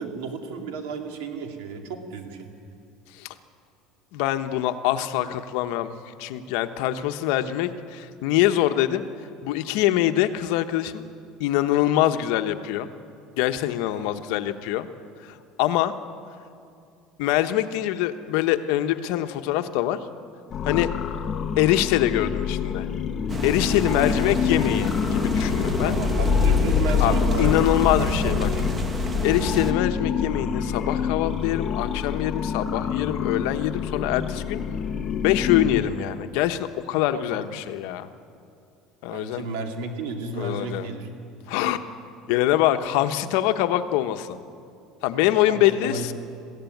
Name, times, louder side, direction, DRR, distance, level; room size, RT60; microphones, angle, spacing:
voice 1, 0.0-2.5 13.9-14.0 23.9-24.4 25.8-28.6 37.1-37.4 39.1-41.1 45.5-46.1, right 4 dB, 80° right, 4 dB, 2.7 m, -33 dB
voice 2, 4.1-5.9 6.2-9.0 9.4-11.0 11.4-12.9 13.4-14.9 15.2-15.9 17.2-20.0 20.6-20.9 21.6-22.9 23.4-26.0 27.0-28.5 29.2-34.6 35.1-38.1 39.0-39.4 40.4-40.9 41.5-41.8 42.3-44.4 45.0-46.1, left 13 dB, 70° left, 9 dB, 1.0 m, -24 dB
sound 1, 20.5-35.8, left 7 dB, 25° left, 1.1 m, -26 dB
sound 2, 23.3-29.7, right 4 dB, 15° right, 1.0 m, -31 dB
21.5 x 15.5 x 9.3 m, 2.5 s
cardioid pair, 165°, 0 cm